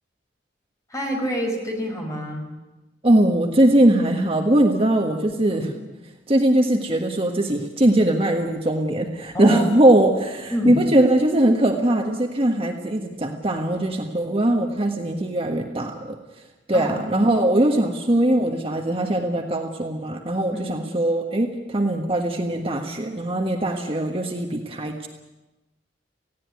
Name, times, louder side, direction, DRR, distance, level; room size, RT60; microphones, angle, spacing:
voice 1, 0.9-2.5 5.5-5.7 9.3-9.7 10.5-10.8 16.7-17.0 20.5-20.6, equal, 20° left, 1 dB, 5.3 m, -27 dB
voice 2, 3.0-5.7 6.3-16.2 16.7-25.1, right 1 dB, 30° right, 3 dB, 1.5 m, -20 dB
19.0 x 16.5 x 9.6 m, 1.1 s
head